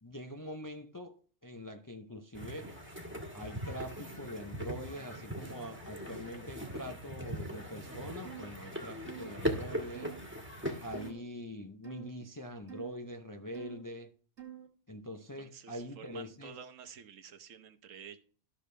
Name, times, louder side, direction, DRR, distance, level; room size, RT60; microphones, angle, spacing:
voice 1, 0.0-2.8 3.3-10.1 10.8-14.1 14.9-16.6, equal, 25° left, 0.5 m, -44 dB
sound 1, 2.3-11.1, equal, 10° right, 1.5 m, -40 dB
sound 2, 8.2-8.5 9.1-9.3 9.9-10.2 10.9-11.2 11.8-12.1 12.7-12.9 13.5-13.8 14.4-14.7, right 11 dB, 60° right, 1.9 m, -47 dB
voice 2, 15.4-18.2, right 7 dB, 90° right, 1.3 m, -50 dB
13.0 x 6.7 x 3.3 m
omnidirectional pair, 1.3 m